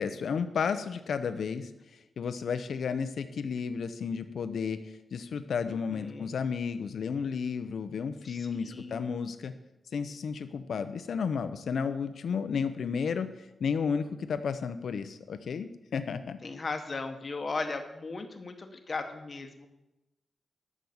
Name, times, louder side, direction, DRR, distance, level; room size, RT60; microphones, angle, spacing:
voice 1, 0.0-1.7 2.2-9.5 9.9-13.3 13.6-16.4, left 6 dB, 75° left, 10 dB, 0.7 m, -32 dB
voice 2, 5.7-6.3 8.2-9.1 16.4-19.7, left 3 dB, 40° left, 6 dB, 1.1 m, -37 dB
12.0 x 6.2 x 7.1 m, 0.97 s
wide cardioid pair, 115°, 0 cm